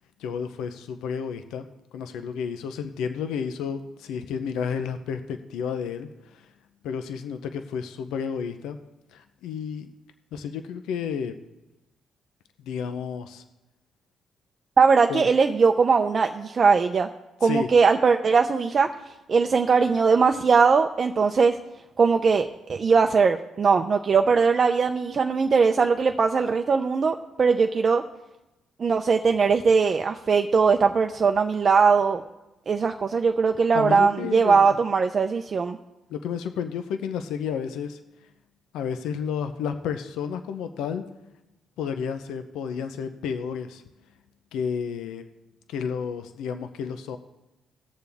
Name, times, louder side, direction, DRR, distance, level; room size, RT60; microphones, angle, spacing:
voice 1, 0.2-1.7 1.9-6.5 6.8-8.8 9.1-9.9 10.3-11.3 12.6-13.4 15.1-15.3 17.4-17.7 33.7-34.8 36.1-38.0 38.7-41.0 41.8-43.8 44.5-45.2 45.7-47.2, left 7 dB, 90° left, 8 dB, 0.7 m, -31 dB
voice 2, 14.8-17.1 17.4-18.9 19.3-21.6 22.0-28.0 28.8-32.2 32.7-35.8, right 5 dB, 45° right, 5 dB, 0.5 m, -20 dB
18.0 x 6.9 x 3.5 m, 0.96 s
cardioid pair, 90°, 0 cm